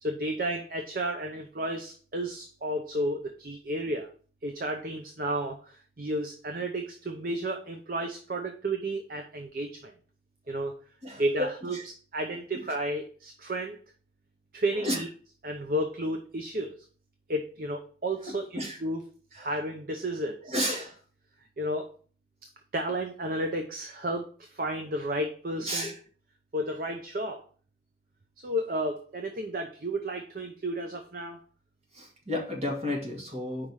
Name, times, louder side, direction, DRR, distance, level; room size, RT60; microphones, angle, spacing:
voice 1, 0.0-4.1 4.4-9.9 10.5-10.7 11.2-11.8 12.1-13.8 14.5-15.1 15.4-16.8 17.3-19.0 19.3-20.5 21.6-21.9 22.7-25.9 26.5-27.4 28.4-31.4, right 1 dB, 50° right, 4 dB, 0.6 m, -32 dB
voice 2, 11.0-11.8 14.8-15.0 18.3-18.8 19.3-19.5 20.4-21.0 25.6-26.0 31.9-33.7, left 1 dB, 35° right, -1 dB, 2.1 m, -32 dB
5.0 x 4.8 x 5.5 m, 0.41 s
head